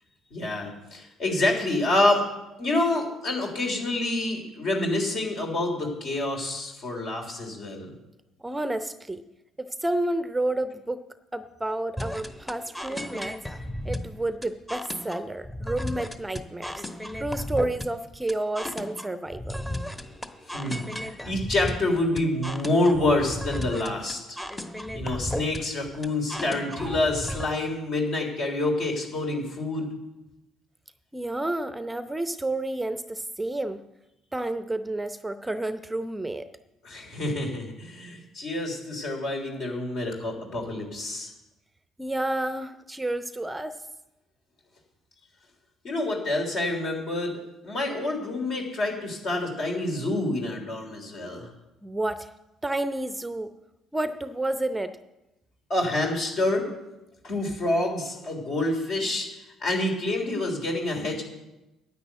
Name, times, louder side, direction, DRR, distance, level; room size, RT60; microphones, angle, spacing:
voice 1, 0.3-2.3 2.6-7.9 20.5-24.4 24.9-29.9 36.8-41.3 45.8-51.5 55.7-56.7 57.2-59.3 59.6-61.2, left 2 dB, 55° left, 1 dB, 3.6 m, -27 dB
voice 2, 8.4-9.2 9.6-11.1 11.3-13.4 13.8-16.8 17.2-19.6 31.1-33.8 34.3-36.5 42.0-43.8 51.8-52.3 52.6-53.5 53.9-55.0, right 1 dB, 10° right, 11 dB, 0.7 m, -30 dB
sound 1, 12.0-27.4, left 1 dB, 10° left, 1.2 m, -35 dB
10.5 x 8.7 x 8.0 m, 0.98 s
figure-of-eight pair, 50°, 0 cm